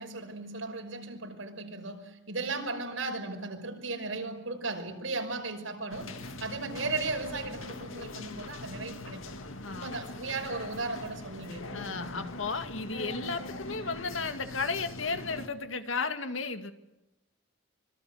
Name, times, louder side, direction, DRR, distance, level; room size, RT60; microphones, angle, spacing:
voice 1, 0.0-9.2 9.7-12.2, right 3 dB, 80° right, 4 dB, 5.6 m, -36 dB
sound 1, 5.9-15.5, left 2 dB, 90° left, 2.2 m, -42 dB
voice 2, 9.6-10.1 11.7-16.7, left 4 dB, 75° left, 9 dB, 2.1 m, -34 dB
25.5 x 23.5 x 8.0 m, 0.93 s
head